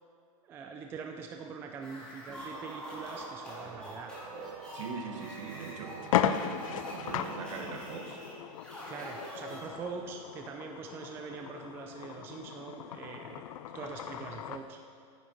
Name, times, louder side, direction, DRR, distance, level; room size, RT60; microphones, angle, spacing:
voice 1, 0.4-4.2 8.9-13.4 13.7-14.8, right 5 dB, 10° right, 3 dB, 0.3 m, -43 dB
sound 1, 1.7-10.0, equal, 5° left, 2.4 m, -45 dB
sound 2, 2.5-7.9, right 12 dB, 90° right, 0.4 m, -49 dB
voice 2, 4.7-8.2, right 5 dB, 60° right, 4 dB, 1.5 m, -42 dB
sound 3, 5.0-5.2 5.6-5.7 6.0-14.7, left 10 dB, 70° left, 0.6 m, -36 dB
10.0 x 9.6 x 5.3 m, 2.3 s
supercardioid pair, 170°, 18 cm